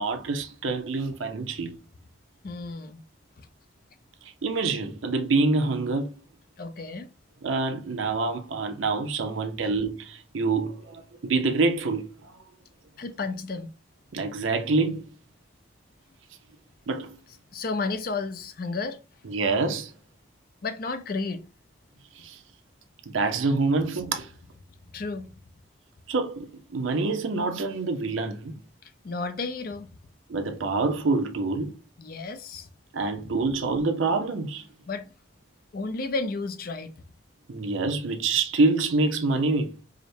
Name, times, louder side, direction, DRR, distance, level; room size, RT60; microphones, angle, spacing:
voice 1, 0.0-1.7 4.4-6.1 7.4-12.3 14.1-15.1 16.9-17.2 19.3-19.9 22.2-22.4 23.1-24.3 26.1-28.6 30.3-31.7 32.9-34.7 37.5-39.8, right 3 dB, 85° right, 0.6 m, -26 dB
voice 2, 2.4-3.0 3.4-3.5 6.6-7.1 13.0-13.7 17.5-19.0 20.6-21.4 24.9-25.3 28.8-29.9 32.0-32.7 34.9-35.1 35.7-36.9, left 3 dB, 45° left, 0.5 m, -32 dB
4.9 x 2.1 x 2.7 m
head